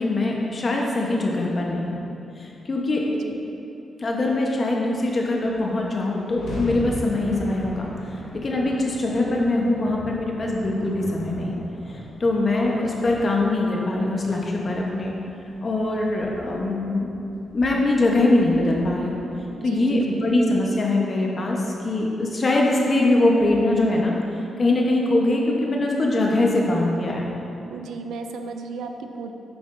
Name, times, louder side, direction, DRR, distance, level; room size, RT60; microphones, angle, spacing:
voice 1, 0.0-1.9 2.4-3.0 4.0-7.9 8.3-11.6 12.2-15.1 15.6-17.1 17.5-19.2 19.6-24.1 24.6-27.3, left 2 dB, 45° left, -1 dB, 1.0 m, -22 dB
voice 2, 3.0-3.4 19.6-20.0 27.7-29.3, right 4 dB, 90° right, 6 dB, 0.4 m, -35 dB
sound 1, 5.2-5.3 5.5-19.8, left 1 dB, 80° left, 1.4 m, -40 dB
8.0 x 5.8 x 2.6 m, 2.8 s
cardioid pair, 80°, 0 cm